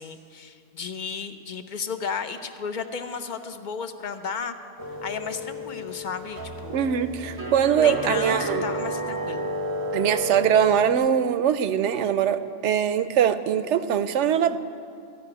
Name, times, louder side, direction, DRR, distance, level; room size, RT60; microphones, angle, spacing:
voice 1, 0.0-4.6 5.0-6.9 7.8-9.4, left 5 dB, 50° left, 9 dB, 0.6 m, -33 dB
sound 1, 4.8-10.9, equal, 25° right, 0.6 m, -32 dB
voice 2, 6.7-8.7 9.9-14.6, right 9 dB, 75° right, 12 dB, 0.9 m, -22 dB
14.5 x 5.7 x 9.8 m, 2.4 s
omnidirectional pair, 1.2 m